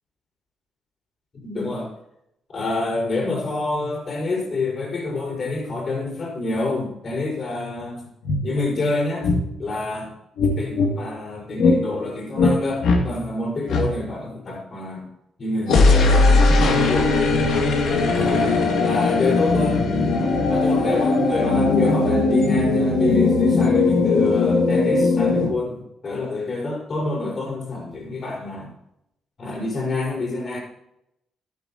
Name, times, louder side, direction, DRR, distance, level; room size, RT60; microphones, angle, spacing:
voice 1, 1.4-1.9 2.5-8.1 8.4-9.3 9.6-10.1 10.5-15.0 15.4-17.2 18.1-19.8 20.5-28.7 29.4-30.6, left 2 dB, 45° left, -1 dB, 5.0 m, -27 dB
sound 1, 7.8-7.9 8.2-8.4 9.2-9.4 10.4-10.9 11.6-11.8 12.4-12.6 12.8-13.0 13.7-13.9 15.7-25.5, left 3 dB, 75° left, 2.5 m, -18 dB
14.5 x 12.5 x 3.0 m, 0.82 s
cardioid pair, 90°, 0 cm